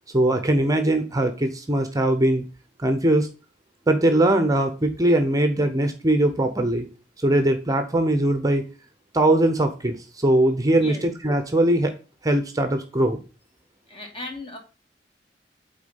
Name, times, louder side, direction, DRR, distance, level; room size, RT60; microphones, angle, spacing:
voice 1, 0.1-2.4 2.8-3.3 3.9-6.9 7.2-8.6 9.1-11.9 12.2-13.2, right 1 dB, 20° right, 7 dB, 0.8 m, -21 dB
voice 2, 13.9-14.6, left 2 dB, 30° left, 3 dB, 2.2 m, -36 dB
8.2 x 4.3 x 5.4 m, 0.34 s
head